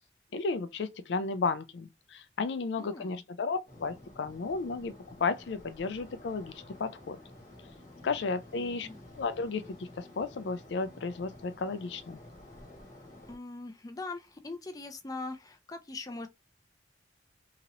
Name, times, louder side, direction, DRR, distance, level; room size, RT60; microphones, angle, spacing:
voice 1, 0.3-6.5 6.8-7.2 8.0-8.9 9.2-9.6 10.0-12.2, left 4 dB, 80° left, 0.4 m, -33 dB
voice 2, 2.8-3.2 8.6-9.0 13.3-16.3, left 3 dB, 20° left, 0.4 m, -41 dB
sound 1, 3.7-13.4, left 1 dB, 45° left, 1.2 m, -51 dB
2.9 x 2.9 x 2.5 m
head